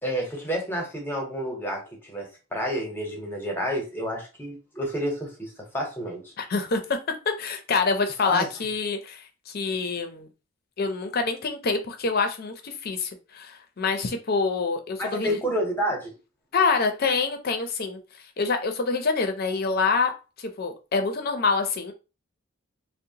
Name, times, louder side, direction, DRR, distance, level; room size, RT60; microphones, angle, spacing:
voice 1, 0.0-6.3 8.2-8.5 15.0-16.1, equal, 10° left, 0 dB, 0.8 m, -30 dB
voice 2, 6.4-6.8 7.4-10.3 10.8-15.4 16.5-18.0 18.4-20.1 20.4-21.9, left 4 dB, 45° left, 6 dB, 0.5 m, -26 dB
2.8 x 2.0 x 2.7 m, 0.31 s
head